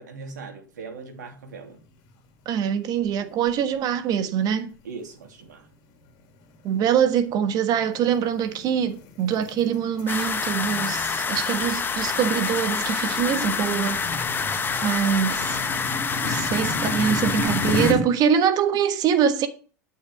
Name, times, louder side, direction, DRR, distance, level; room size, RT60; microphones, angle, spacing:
voice 1, 0.0-1.8 4.8-5.7, right 4 dB, 70° right, 2.9 m, -39 dB
sound 1, 1.6-2.1 2.4-2.5 3.3-3.8 4.3-4.5 5.1-18.0, left 2 dB, 50° left, 2.7 m, -33 dB
voice 2, 2.4-4.7 6.6-14.0 14.8-15.6 16.2-19.5, right 8 dB, 40° right, 1.4 m, -24 dB
sound 2, 10.1-17.9, left 5 dB, 20° left, 1.3 m, -27 dB
12.0 x 6.3 x 5.0 m
figure-of-eight pair, 85°, 10 cm